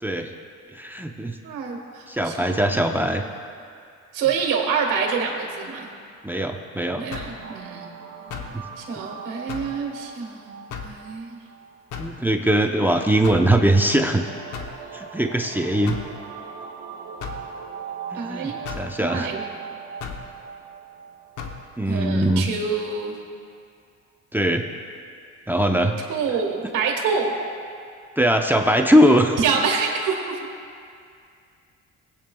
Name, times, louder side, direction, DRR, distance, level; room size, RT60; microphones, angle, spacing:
voice 1, 0.0-0.3 0.7-1.3 2.1-3.2 6.2-7.1 8.5-8.6 12.0-14.3 14.9-16.0 18.1-19.3 21.8-22.5 24.3-24.7 25.5-26.0 28.2-29.4, right 1 dB, 5° right, 4 dB, 0.6 m, -21 dB
voice 2, 1.4-2.8 4.1-5.9 7.0-7.9 8.4-8.5 8.8-11.4 18.1-18.6 19.0-19.5 21.9-23.2 26.1-27.3 29.4-30.4, right 5 dB, 90° right, 0 dB, 1.5 m, -27 dB
sound 1, 7.1-7.4 8.3-8.6 9.5-9.8 10.7-11.0 11.9-12.2 13.2-13.5 14.5-14.8 15.9-16.1 17.2-17.5 18.6-18.9 20.0-20.3 21.4-21.6, left 6 dB, 80° left, 1.0 m, -34 dB
sound 2, 7.4-22.6, right 7 dB, 65° right, 0.9 m, -40 dB
20.0 x 8.6 x 2.3 m, 2.3 s
cardioid pair, 90°, 30 cm